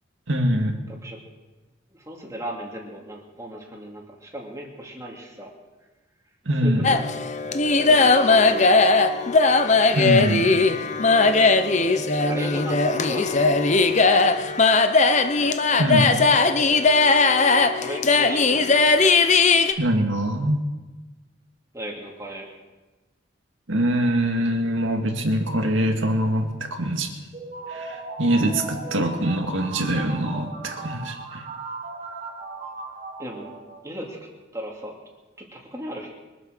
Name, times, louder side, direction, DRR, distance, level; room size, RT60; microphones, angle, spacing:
voice 1, 0.3-0.8 6.5-6.9 9.9-10.5 15.8-16.2 19.8-20.6 23.7-27.1 27.7-31.4, right 1 dB, 75° right, 4 dB, 2.0 m, -23 dB
voice 2, 1.9-5.5 6.6-7.1 7.9-8.8 12.1-14.4 17.6-18.8 21.7-22.5 33.2-33.5 33.8-34.2 34.5-34.9 35.4-36.1, right 1 dB, 15° right, -1 dB, 2.6 m, -36 dB
sound 1, 6.8-19.7, left 3 dB, 35° left, 0.7 m, -18 dB
sound 2, 27.3-34.1, right 3 dB, 35° right, 1.5 m, -37 dB
23.5 x 8.1 x 6.6 m, 1.2 s
head